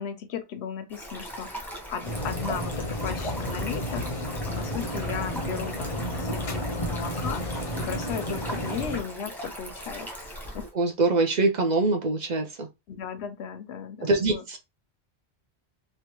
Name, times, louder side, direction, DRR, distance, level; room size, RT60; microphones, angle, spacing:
voice 1, 0.0-7.4 7.8-10.1 10.5-10.6 12.9-14.4, left 7 dB, 85° left, 0.9 m, -36 dB
Stream, 0.9-10.7, equal, ahead, 0.8 m, -39 dB
sound 1, 2.0-9.0, equal, 40° left, 0.7 m, -32 dB
voice 2, 10.7-12.7 14.0-14.6, right 3 dB, 50° right, 0.6 m, -24 dB
3.1 x 2.4 x 2.9 m
omnidirectional pair, 1.1 m